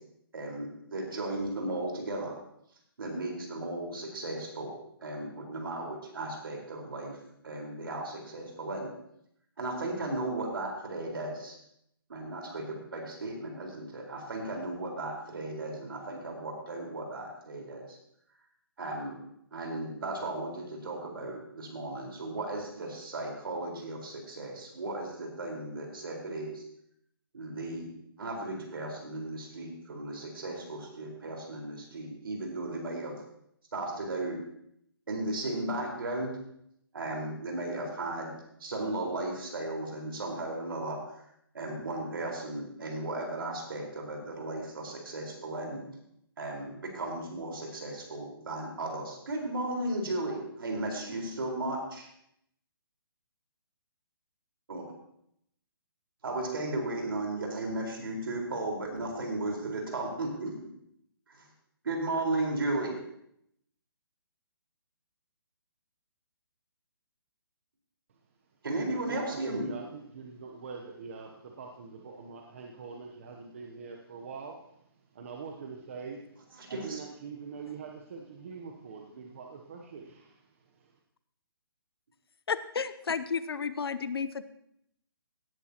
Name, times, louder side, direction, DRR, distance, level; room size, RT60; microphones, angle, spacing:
voice 1, 0.3-2.3 3.0-4.7 5.0-7.2 7.4-8.9 9.6-11.6 12.1-17.8 18.8-19.2 19.5-26.6 27.3-27.9 28.2-33.2 33.7-34.4 35.1-36.3 36.9-38.3 38.6-41.2 41.5-45.8 46.4-52.1 54.7-54.8 56.2-60.7 61.3-61.5 61.8-62.9 68.6-69.7 76.6-77.0, right 2 dB, 65° right, 0 dB, 4.6 m, -35 dB
voice 2, 68.8-74.7 75.1-80.4, right 5 dB, 35° right, 2 dB, 0.9 m, -44 dB
voice 3, 82.5-84.4, left 5 dB, 80° left, 14 dB, 0.8 m, -32 dB
17.5 x 10.5 x 3.0 m, 0.74 s
hypercardioid pair, 170°, 13 cm